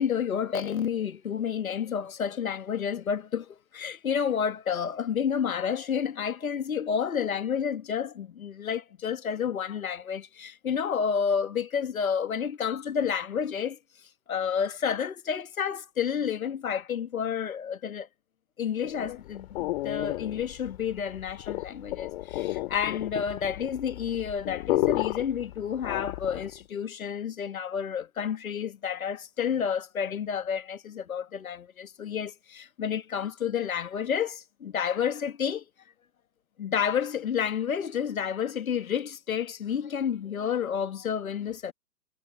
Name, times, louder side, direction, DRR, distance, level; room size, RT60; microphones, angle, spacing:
voice 1, 0.0-13.8 14.3-18.1 18.6-35.6 36.6-41.7, left 7 dB, 70° left, 2.0 m, -30 dB
sound 1, 18.8-26.6, left 17 dB, 45° left, 3.9 m, -32 dB
figure-of-eight pair, 115°, 44 cm